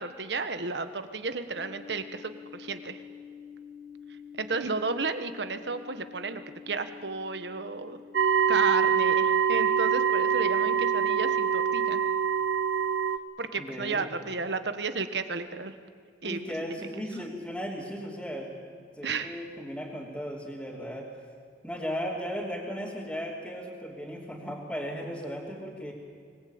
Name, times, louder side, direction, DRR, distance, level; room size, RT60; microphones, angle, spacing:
voice 1, 0.0-3.0 4.4-6.4 6.7-8.0 8.5-12.0 13.4-15.7 16.2-16.4 16.7-16.8 19.0-19.3, right 4 dB, 70° right, 9 dB, 1.4 m, -33 dB
sound 1, 1.5-8.2, left 7 dB, 55° left, 1.8 m, -47 dB
sound 2, 8.1-13.2, right 7 dB, 85° right, 0.8 m, -24 dB
voice 2, 13.5-14.1 16.2-21.1 21.6-25.9, equal, 5° left, -7 dB, 3.1 m, -36 dB
24.5 x 20.0 x 8.7 m, 2.1 s
head